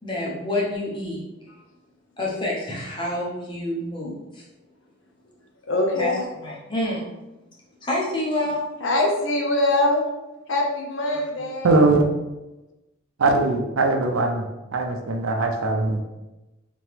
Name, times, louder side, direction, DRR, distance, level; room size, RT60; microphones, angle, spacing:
voice 1, 0.0-1.2 2.2-4.4 6.0-6.1 6.4-7.1 7.8-8.6, left 1 dB, 25° left, -4 dB, 0.8 m, -27 dB
voice 2, 5.7-6.3 8.8-10.0 10.5-11.9, left 2 dB, 70° left, 0 dB, 0.7 m, -23 dB
voice 3, 11.6-12.0 13.2-14.5 14.7-16.0, right 3 dB, 90° right, 4 dB, 0.5 m, -20 dB
3.4 x 3.0 x 3.3 m, 1.0 s
head